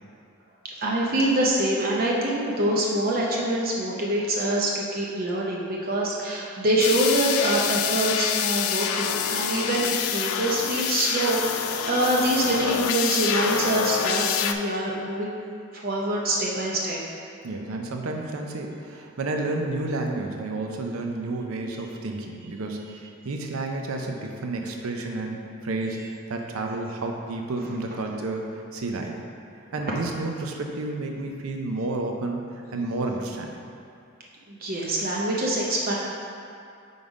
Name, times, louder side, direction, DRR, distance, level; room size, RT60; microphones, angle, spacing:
voice 1, 0.6-15.3 15.7-17.0 34.5-35.9, right 1 dB, 45° right, -4 dB, 0.6 m, -25 dB
sound 1, 6.8-14.5, left 8 dB, 85° left, 0.3 m, -27 dB
voice 2, 17.4-29.2 29.7-33.6, right 2 dB, 90° right, 2 dB, 0.6 m, -31 dB
5.3 x 4.0 x 4.8 m, 2.5 s
head